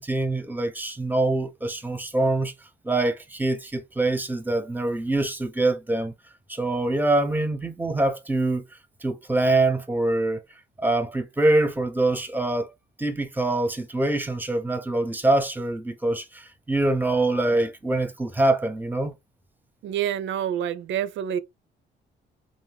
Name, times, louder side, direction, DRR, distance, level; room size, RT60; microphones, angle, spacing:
voice 1, 0.0-2.5 2.8-6.1 6.5-8.6 9.0-10.4 10.8-12.7 13.0-19.1, right 2 dB, 10° right, 0.6 m, -24 dB
voice 2, 19.8-21.4, right 10 dB, 70° right, 0.4 m, -27 dB
2.7 x 2.1 x 3.2 m
cardioid pair, 90°, 20 cm